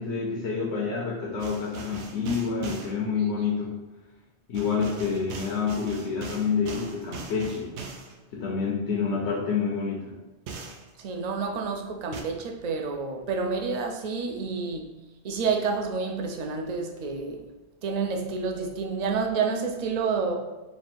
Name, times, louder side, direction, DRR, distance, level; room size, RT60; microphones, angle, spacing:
voice 1, 0.0-3.7 4.5-7.8 8.3-10.2, left 5 dB, 85° left, -4 dB, 0.9 m, -28 dB
sound 1, 1.4-2.9 4.5-8.1 10.5-10.9 12.1-12.2, right 4 dB, 90° right, 0.9 m, -40 dB
voice 2, 11.0-14.9 15.2-17.4 17.8-20.3, right 5 dB, 55° right, 2 dB, 0.5 m, -29 dB
3.3 x 2.4 x 4.3 m, 1.1 s
omnidirectional pair, 1.1 m